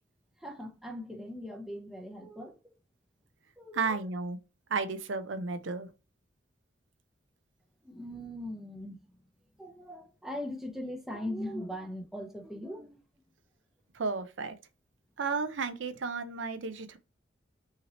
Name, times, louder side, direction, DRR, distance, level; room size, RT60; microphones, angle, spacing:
voice 1, 0.4-2.6 3.6-4.1 7.8-9.2 9.6-13.0, left 1 dB, ahead, 0.6 m, -40 dB
voice 2, 3.7-4.4 4.7-5.9 13.9-14.5 15.2-17.0, right 4 dB, 75° right, 0.6 m, -33 dB
5.8 x 2.9 x 2.9 m
head